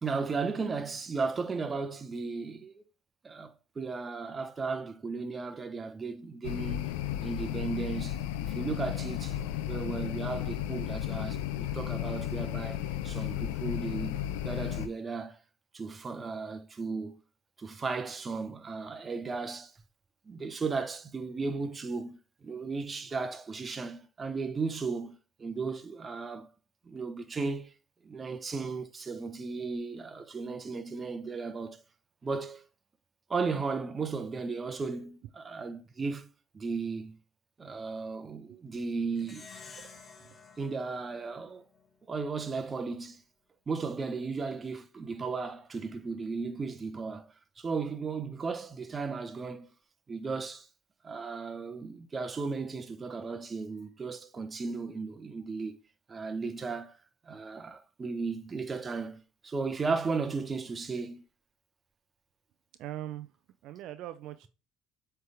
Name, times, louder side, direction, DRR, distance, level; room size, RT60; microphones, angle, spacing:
voice 1, 0.0-2.8 3.2-6.9 7.2-9.4 9.7-15.4 15.7-17.2 17.6-19.7 20.3-26.5 26.9-27.7 28.0-31.8 32.2-32.6 33.3-36.3 36.5-37.2 37.6-39.5 40.6-41.6 42.1-43.2 43.7-49.7 50.1-50.7 51.0-55.8 56.1-56.9 57.3-61.2, right 4 dB, 30° right, 0.9 m, -35 dB
sound 1, 6.4-14.9, left 12 dB, 85° left, 0.6 m, -34 dB
Plucked string instrument, 39.2-42.0, left 4 dB, 30° left, 1.4 m, -51 dB
voice 2, 62.8-63.3 63.6-64.5, right 13 dB, 70° right, 0.4 m, -41 dB
7.7 x 3.4 x 3.5 m
supercardioid pair, 80°, 0 cm